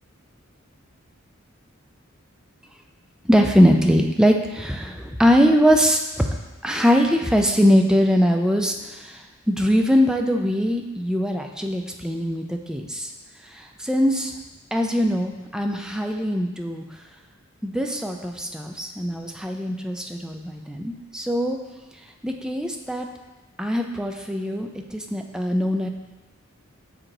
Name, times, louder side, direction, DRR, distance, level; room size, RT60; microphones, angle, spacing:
voice 1, 3.2-6.3 6.6-9.2 9.5-13.1 13.5-14.3 14.7-16.8 17.6-21.6 22.2-23.1 23.6-25.9, equal, 5° right, 3 dB, 0.4 m, -21 dB
6.5 x 4.6 x 3.8 m, 1.2 s
head